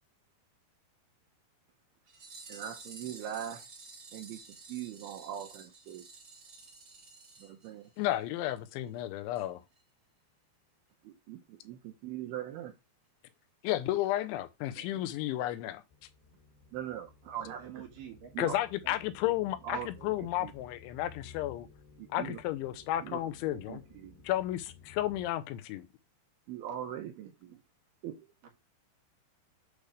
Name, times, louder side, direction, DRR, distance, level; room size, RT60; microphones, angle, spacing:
sound 1, 2.1-8.2 8.5-8.6 8.9-9.0 9.4-9.5 9.8-9.9, right 4 dB, 35° right, 2.0 m, -51 dB
voice 1, 2.5-3.7 4.1-4.4 4.7-6.0 7.4-7.9 11.0-12.7 16.7-17.7 18.3-18.5 19.6-20.5 22.0-22.4 23.0-24.2 26.5-27.6 28.0-28.2, right 10 dB, 75° right, 2.5 m, -41 dB
voice 2, 8.0-9.6 13.6-15.8 18.4-21.7 22.1-23.8 24.2-25.9, left 14 dB, 85° left, 3.2 m, -32 dB
voice 3, 14.7-15.0 17.4-18.3 18.8-19.0 19.2-19.3 28.4-28.5, right 9 dB, 60° right, 3.0 m, -48 dB
sound 2, 15.9-25.3, left 6 dB, 65° left, 2.9 m, -55 dB
8.4 x 3.4 x 6.5 m
omnidirectional pair, 5.2 m